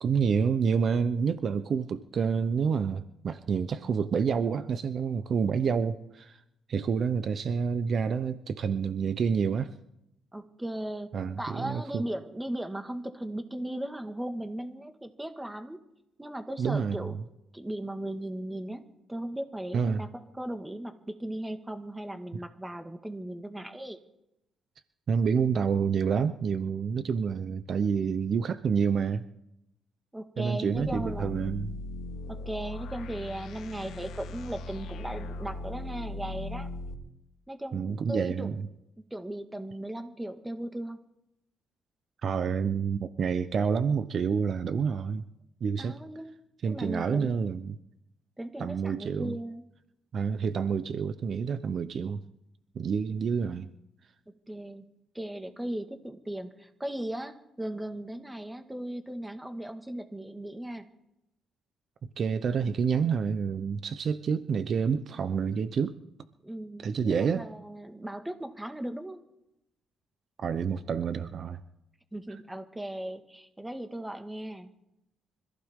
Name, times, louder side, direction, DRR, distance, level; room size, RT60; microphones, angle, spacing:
voice 1, 0.0-6.4 6.7-9.7 11.1-12.0 16.6-17.1 19.7-20.0 25.1-29.2 30.4-31.7 37.7-38.6 42.2-45.2 45.6-46.0 46.6-47.8 48.6-49.4 50.1-52.2 52.8-53.7 62.2-65.9 66.8-67.4 70.4-71.6, right 6 dB, 55° right, 11 dB, 0.7 m, -28 dB
voice 2, 10.3-11.1 11.4-15.8 16.2-17.1 17.5-24.0 30.1-31.4 32.3-36.7 37.5-38.6 39.1-41.0 45.8-46.3 46.6-47.5 48.4-49.7 54.5-54.9 55.1-60.9 66.4-69.2 72.1-74.7, right 1 dB, 10° right, 7 dB, 1.7 m, -37 dB
sound 1, 30.7-36.9, left 2 dB, 80° left, 2.0 m, -39 dB
25.5 x 15.0 x 3.7 m, 0.84 s
cardioid pair, 90°, 0 cm